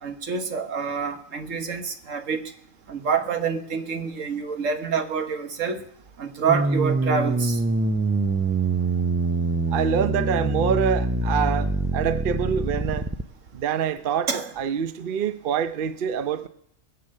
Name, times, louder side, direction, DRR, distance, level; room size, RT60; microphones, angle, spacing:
voice 1, 0.0-2.4 2.9-5.8 6.2-7.6 14.3-14.5, right 6 dB, 80° right, 1.7 m, -27 dB
sound 1, 6.5-13.2, right 3 dB, 20° right, 0.3 m, -24 dB
voice 2, 9.7-13.1 13.5-16.5, right 7 dB, 50° right, 0.8 m, -26 dB
20.5 x 7.8 x 6.6 m
omnidirectional pair, 1.3 m